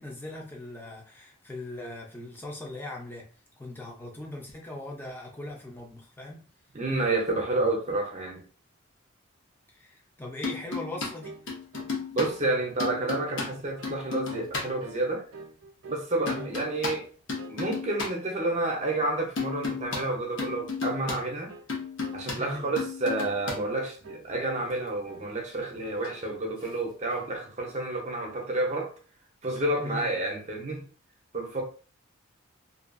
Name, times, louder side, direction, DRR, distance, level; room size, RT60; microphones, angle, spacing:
voice 1, 0.0-3.3 3.6-6.5 9.7-11.3 16.2-16.6 22.4-22.7 29.8-30.1, left 2 dB, 10° left, 0.5 m, -40 dB
voice 2, 6.7-8.4 12.1-15.2 15.9-17.0 17.5-21.5 22.1-28.9 29.4-30.9 31.3-31.6, right 2 dB, 35° right, 0.6 m, -30 dB
sound 1, 10.4-11.1 11.5-12.3 12.8-14.7 16.3-16.9 17.3-18.1 19.4-20.0 20.4-21.2 21.7-22.4 22.8-23.6 26.0-26.1, left 4 dB, 60° left, 0.8 m, -33 dB
sound 2, 11.2-11.5 11.7-12.0 12.2-13.5 13.8-14.0 14.3-14.5 14.8-15.0 15.3-16.1 16.3-17.1 17.4-17.6 17.9-18.1 18.4-18.6 18.9-19.1 19.4-19.7 19.9-20.2 20.4-20.7 21.0-21.2 21.5-21.7 22.0-22.2 22.5-22.7 23.0-23.2 23.5-24.3 24.6-25.3 25.6-26.3 26.6-27.3, right 4 dB, 70° right, 0.4 m, -46 dB
2.6 x 2.4 x 2.5 m
head